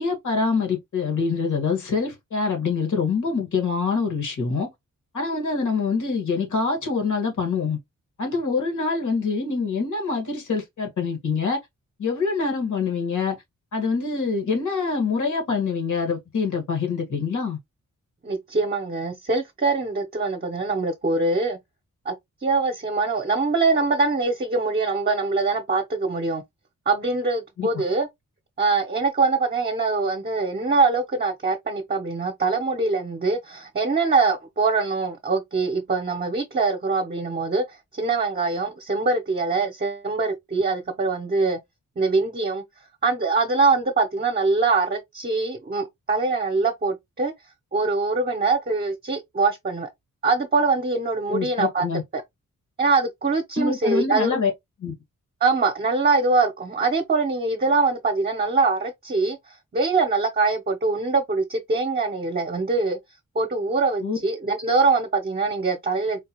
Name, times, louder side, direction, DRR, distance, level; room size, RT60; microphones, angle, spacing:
voice 1, 0.0-4.7 5.1-7.8 8.2-11.6 12.0-13.4 13.7-17.6 27.6-27.7 51.3-52.0 53.6-54.5 54.8-54.9 64.0-64.2, left 4 dB, 65° left, 1.8 m, -25 dB
voice 2, 18.2-21.6 22.0-22.1 22.4-26.4 26.9-28.1 28.6-37.6 37.9-41.6 42.0-42.6 43.0-47.3 47.7-49.9 50.2-51.8 52.1-52.2 52.8-54.4 55.4-59.4 59.7-63.0 63.3-66.2, right 3 dB, 30° right, 0.8 m, -23 dB
4.5 x 2.3 x 2.9 m
wide cardioid pair, 110°, 31 cm